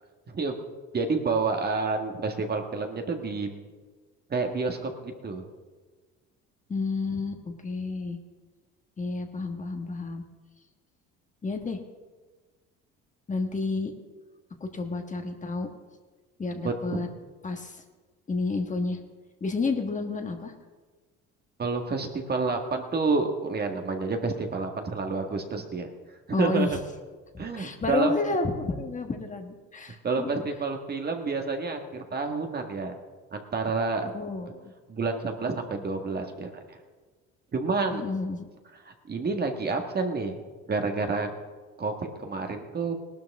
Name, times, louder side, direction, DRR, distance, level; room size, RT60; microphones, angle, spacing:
voice 1, 0.3-0.6 0.9-3.6 4.3-5.4 16.6-17.0 21.6-25.9 26.4-26.8 27.4-28.1 30.0-32.9 33.3-34.1 34.9-36.8 37.5-38.0 38.9-40.4 40.7-41.3 41.8-41.9 42.2-42.9, right 4 dB, 35° right, 4 dB, 1.7 m, -29 dB
voice 2, 6.7-8.2 9.0-10.2 11.4-11.8 13.3-13.9 14.6-15.7 16.4-17.1 17.4-17.8 18.3-19.0 19.4-20.5 26.3-26.8 27.5-30.3 34.1-34.7 37.9-38.5, left 3 dB, 25° left, 4 dB, 1.5 m, -30 dB
18.0 x 12.5 x 3.7 m, 1.4 s
supercardioid pair, 90°, 29 cm